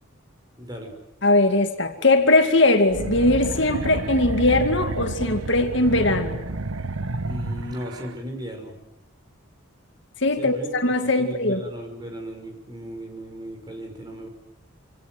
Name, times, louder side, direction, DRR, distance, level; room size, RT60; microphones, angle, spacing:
voice 1, 0.6-0.9 7.3-8.8 10.4-10.9 11.2-14.3, equal, 20° right, 3 dB, 5.8 m, -36 dB
voice 2, 1.2-6.4 10.2-11.6, left 2 dB, 60° left, 6 dB, 2.4 m, -20 dB
sound 1, 2.9-8.1, right 2 dB, 85° right, 1.2 m, -30 dB
27.0 x 26.5 x 7.8 m, 0.88 s
head